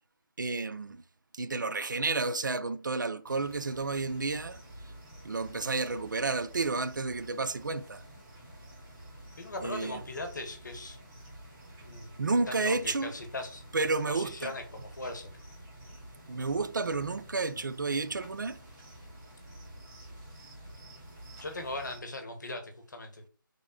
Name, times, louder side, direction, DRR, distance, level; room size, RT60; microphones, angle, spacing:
voice 1, 0.4-1.0 1.3-4.6 5.2-8.0 9.6-10.0 12.2-13.1 13.7-14.5 16.3-18.6, right 3 dB, 60° right, 0.4 m, -31 dB
sound 1, 3.2-22.0, right 1 dB, 10° right, 0.9 m, -50 dB
voice 2, 9.4-11.0 11.8-12.1 12.5-13.6 14.1-15.3 21.4-23.2, left 2 dB, 55° left, 0.9 m, -39 dB
3.5 x 2.1 x 3.7 m
figure-of-eight pair, 160°, 12 cm